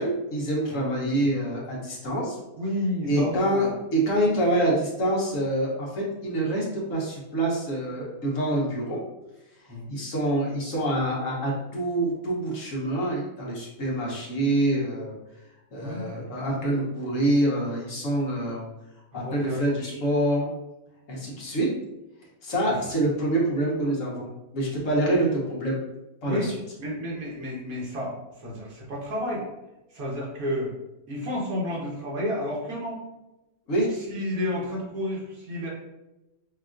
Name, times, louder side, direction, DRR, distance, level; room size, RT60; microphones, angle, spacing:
voice 1, 0.0-2.4 3.1-9.0 9.9-15.2 15.7-18.7 19.1-20.5 21.1-21.7 22.4-25.8 26.2-26.5 33.7-33.9, right 1 dB, 65° left, -4 dB, 1.4 m, -26 dB
voice 2, 0.7-1.3 2.6-3.7 9.7-9.9 15.8-16.5 19.1-20.0 22.7-22.8 23.0-23.1 25.0-25.1 26.3-26.5 26.8-29.4 29.9-30.7 31.1-33.0 34.1-35.7, left 1 dB, 85° right, -4 dB, 1.6 m, -31 dB
5.4 x 2.4 x 2.5 m, 0.97 s
omnidirectional pair, 1.5 m